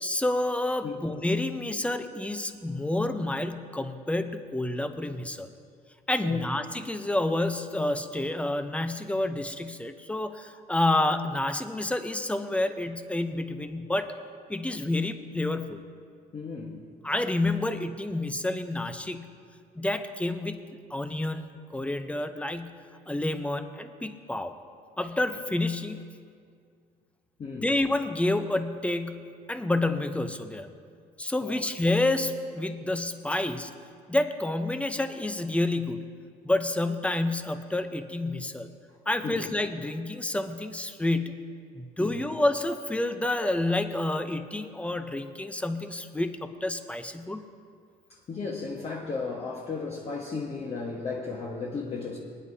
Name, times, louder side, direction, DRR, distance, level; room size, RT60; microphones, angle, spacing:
voice 1, 0.0-5.5 6.1-14.1 14.5-15.8 17.0-19.3 19.8-20.6 20.9-22.8 23.1-24.6 25.0-26.0 27.6-30.7 31.2-33.7 34.1-36.1 36.4-38.7 39.1-41.5 41.7-47.4, left 2 dB, 5° left, 8 dB, 0.7 m, -29 dB
voice 2, 16.3-16.8 27.4-27.7 31.4-31.6 39.2-39.4 42.0-42.3 48.1-52.2, left 4 dB, 35° left, -3 dB, 1.4 m, -35 dB
24.5 x 9.7 x 2.8 m, 2.2 s
cardioid pair, 110°, 17 cm